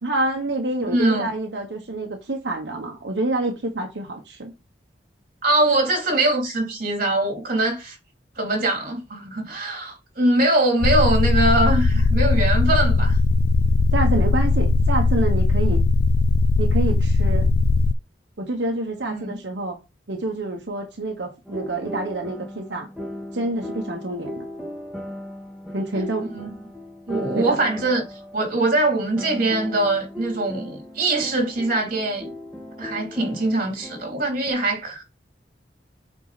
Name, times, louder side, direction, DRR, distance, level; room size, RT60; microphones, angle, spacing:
voice 1, 0.0-4.5 13.9-15.8 16.6-17.5 18.4-19.8 20.1-22.9 23.3-24.4 25.7-26.3 27.3-27.6, right 2 dB, 90° right, 1.3 m, -27 dB
voice 2, 0.8-1.3 5.4-7.9 8.4-13.2 19.1-19.4 26.3-26.5 27.1-28.0 28.3-32.3 32.8-35.0, right 2 dB, 55° right, 3.3 m, -22 dB
sound 1, 10.8-17.9, left 3 dB, 65° left, 0.3 m, -19 dB
sound 2, 21.5-34.5, left 1 dB, ahead, 2.0 m, -37 dB
8.3 x 4.6 x 4.2 m
head